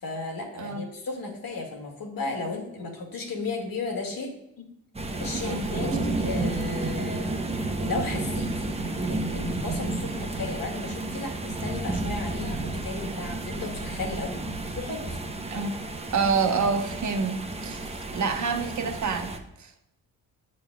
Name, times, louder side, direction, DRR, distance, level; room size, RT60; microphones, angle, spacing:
voice 1, 0.0-4.7 5.2-8.7 9.1-15.2, left 3 dB, 55° left, 1 dB, 2.1 m, -34 dB
sound 1, 4.9-19.4, right 2 dB, 15° right, 0.9 m, -31 dB
voice 2, 5.3-5.7 15.5-15.7 16.1-19.3 19.6-19.7, right 5 dB, 45° right, 5 dB, 1.2 m, -27 dB
9.0 x 5.2 x 2.3 m, 0.78 s
supercardioid pair, 55°, 41 cm